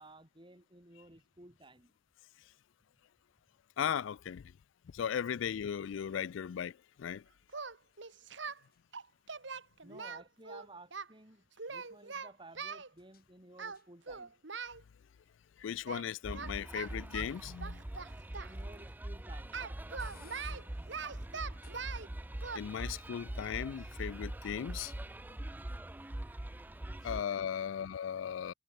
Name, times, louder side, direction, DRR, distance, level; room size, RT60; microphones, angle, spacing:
voice 1, 0.0-1.9 9.8-14.3 18.4-19.6, right 2 dB, 25° right, 7.7 m, -55 dB
voice 2, 3.8-4.4 4.9-7.2 15.6-17.8 22.5-24.9 27.0-28.5, left 8 dB, 85° left, 0.4 m, -37 dB
sound 1, 6.9-22.3, left 8 dB, 50° left, 6.7 m, -70 dB
Singing, 7.5-8.6 8.9-11.1 11.6-12.9 13.6-13.8 14.1-14.8 15.9-16.1 16.3-18.5 19.5-22.1 22.4-22.6, right 5 dB, 70° right, 1.9 m, -42 dB
sound 2, 16.2-27.2, right 1 dB, 10° right, 0.4 m, -43 dB
head